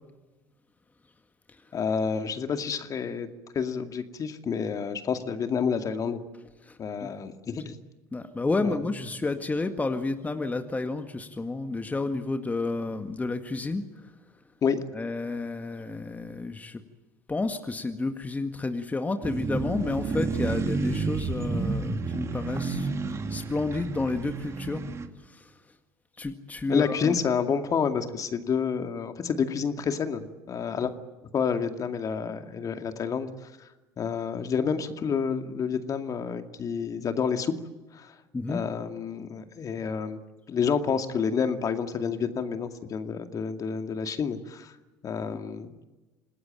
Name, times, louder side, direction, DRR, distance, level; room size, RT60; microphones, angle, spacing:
voice 1, 1.7-3.3 3.5-6.2 6.8-7.8 8.6-8.9 14.6-14.8 26.7-30.9 31.3-37.5 37.9-38.2 38.5-40.2 40.5-44.8 45.0-45.7, left 6 dB, 40° left, 7 dB, 2.3 m, -29 dB
voice 2, 8.1-13.8 14.9-16.8 17.3-22.9 23.3-24.8 25.3-25.5 26.2-27.2 38.3-38.6, left 3 dB, 15° left, 7 dB, 1.9 m, -30 dB
sound 1, 19.2-25.1, right 4 dB, 30° right, 2.7 m, -30 dB
27.5 x 19.0 x 9.0 m, 1.2 s
hypercardioid pair, 65°, 9 cm